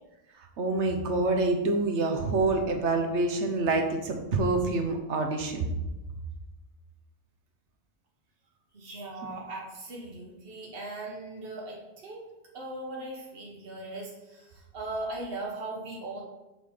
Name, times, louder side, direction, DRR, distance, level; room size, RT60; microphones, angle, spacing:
voice 1, 0.6-5.8, right 3 dB, 80° right, 4 dB, 1.2 m, -26 dB
voice 2, 8.7-12.2 12.5-16.2, right 2 dB, 55° right, -2 dB, 1.5 m, -39 dB
7.1 x 3.8 x 4.9 m, 1.0 s
omnidirectional pair, 1.2 m